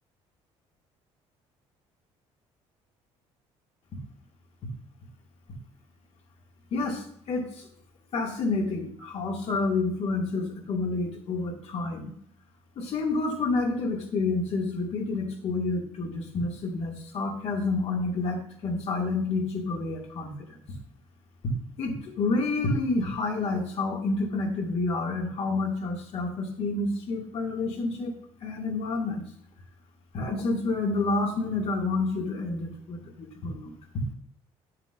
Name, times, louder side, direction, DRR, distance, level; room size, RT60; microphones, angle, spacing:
voice 1, 6.7-7.7 8.1-12.1 12.8-20.6 21.4-21.5 21.8-28.1 28.4-29.2 30.1-34.0, left 3 dB, 55° left, 0 dB, 2.3 m, -29 dB
10.5 x 7.3 x 2.6 m, 0.66 s
cardioid pair, 105°, 12 cm